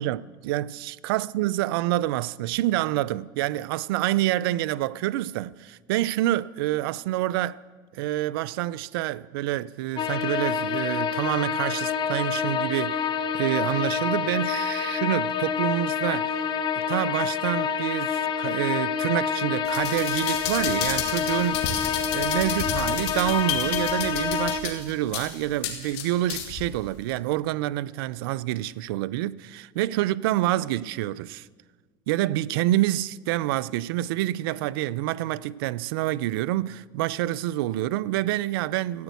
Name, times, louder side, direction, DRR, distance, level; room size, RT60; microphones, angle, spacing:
voice 1, 0.0-7.6 7.9-16.4 16.8-21.7 22.1-31.5 32.1-39.0, right 15 dB, 85° right, 0.4 m, -27 dB
sound 1, 10.0-24.6, left 7 dB, 40° left, 1.2 m, -27 dB
sound 2, 19.7-26.7 27.1-27.2, left 8 dB, 70° left, 2.2 m, -32 dB
14.0 x 9.2 x 8.1 m
supercardioid pair, 100°, 12 cm